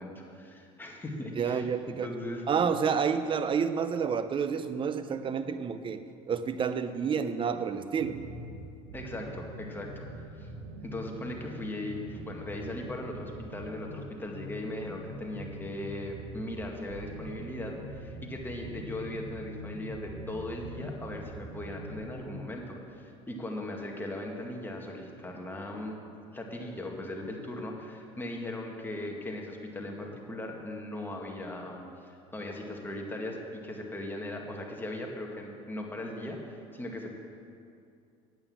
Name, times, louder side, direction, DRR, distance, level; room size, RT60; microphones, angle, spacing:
voice 1, 0.0-2.4 8.9-10.5 10.8-26.0 26.3-37.1, left 1 dB, 15° left, 0 dB, 1.9 m, -38 dB
voice 2, 1.4-2.1 2.5-8.2, right 6 dB, 35° right, 11 dB, 0.7 m, -29 dB
sound 1, 8.0-22.4, right 1 dB, 75° right, 1.2 m, -43 dB
9.1 x 8.9 x 7.3 m, 2.5 s
supercardioid pair, 90°, 16 cm